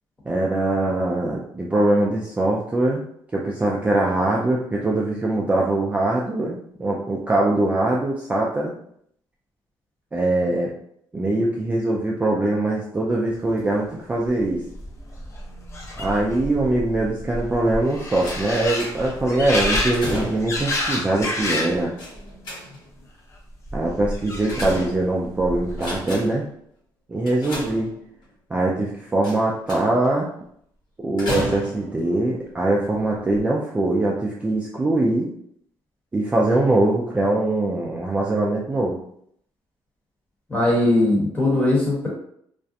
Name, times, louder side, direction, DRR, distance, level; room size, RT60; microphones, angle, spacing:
voice 1, 0.3-3.0 3.3-8.7 10.1-10.7 11.1-14.6 16.0-21.9 23.7-26.4 27.1-27.9 28.5-30.3 31.0-35.3 36.1-39.0, right 2 dB, 15° right, -4 dB, 0.4 m, -22 dB
sound 1, 14.3-14.4 14.5-21.8 22.2-22.8 23.7-25.0 25.3-26.0, left 1 dB, 35° left, 0.6 m, -29 dB
sound 2, 18.2-19.3 19.7-20.7 22.0-23.0 24.0-25.3 25.7-26.5 27.2-28.2 29.2-30.1 31.2-32.0 32.8-33.0 33.3-33.4, left 1 dB, 60° left, 1.2 m, -32 dB
voice 2, 40.5-42.1, left 1 dB, 20° left, -4 dB, 1.1 m, -19 dB
2.4 x 2.1 x 2.6 m, 0.68 s
cardioid pair, 115°, 8 cm